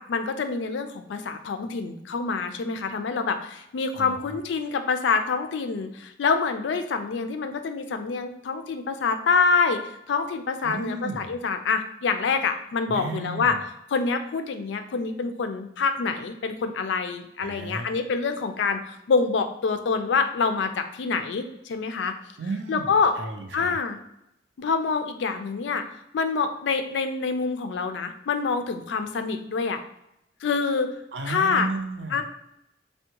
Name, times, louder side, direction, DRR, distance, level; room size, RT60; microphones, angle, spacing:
voice 1, 0.0-9.8 10.1-13.6 13.9-22.1 22.7-23.1 23.5-24.0 24.6-25.8 26.1-29.8 30.4-30.9 31.3-31.7 32.1-32.2, left 5 dB, 85° left, 7 dB, 0.4 m, -26 dB
voice 2, 3.9-4.4 10.6-11.3 12.9-13.6 17.4-17.9 22.4-22.9 23.2-23.7 31.1-32.2, right 3 dB, 70° right, 5 dB, 0.5 m, -33 dB
3.5 x 2.2 x 2.9 m, 0.82 s
head